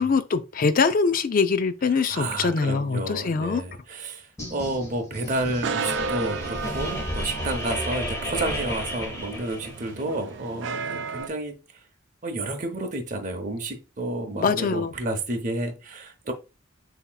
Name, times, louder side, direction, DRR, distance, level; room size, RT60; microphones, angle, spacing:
voice 1, 0.0-3.6 14.3-14.9, left 5 dB, 45° left, 0.4 m, -23 dB
voice 2, 2.1-11.6 12.2-16.3, right 2 dB, 40° right, 0.7 m, -31 dB
sound 1, 4.4-10.0, left 1 dB, 15° left, 1.3 m, -33 dB
sound 2, 5.3-11.3, right 4 dB, 65° right, 0.4 m, -33 dB
7.2 x 2.8 x 2.2 m
head